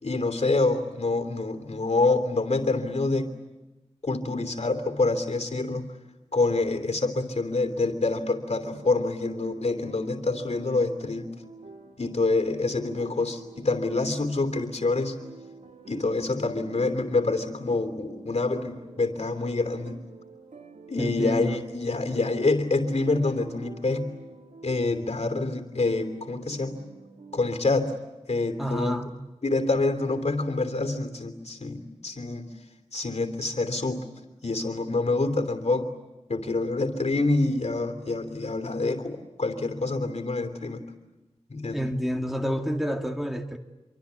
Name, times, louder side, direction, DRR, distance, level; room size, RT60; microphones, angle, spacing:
voice 1, 0.0-3.3 4.0-5.9 6.3-11.3 12.0-15.1 15.9-20.0 20.9-24.1 24.6-26.8 27.3-27.9 28.3-29.0 29.4-32.5 32.9-34.0 34.4-35.9 36.3-40.8 41.5-41.8, left 3 dB, 65° left, 8 dB, 3.1 m, -26 dB
sound 1, 8.7-27.5, right 4 dB, 90° right, 2.3 m, -48 dB
voice 2, 21.0-21.6 28.6-29.1 41.7-43.6, equal, ahead, 3 dB, 2.2 m, -29 dB
28.0 x 23.5 x 8.3 m, 1.1 s
wide cardioid pair, 50°, 12 cm